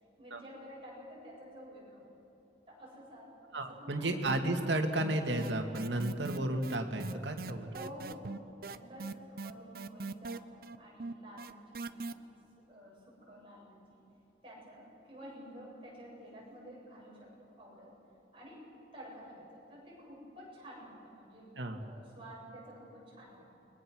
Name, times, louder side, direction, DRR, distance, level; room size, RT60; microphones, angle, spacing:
voice 1, 0.2-2.1 2.7-4.2 7.7-10.4 10.8-12.2 12.7-14.0 14.4-17.9 18.3-18.6 18.9-23.5, equal, 30° right, -4 dB, 7.3 m, -51 dB
voice 2, 3.5-7.7 21.6-21.8, right 1 dB, 90° right, 4 dB, 2.3 m, -33 dB
sound 1, 4.2-4.7 5.0-12.1, right 3 dB, 55° right, 0.7 m, -41 dB
29.5 x 22.0 x 6.3 m, 3.0 s
head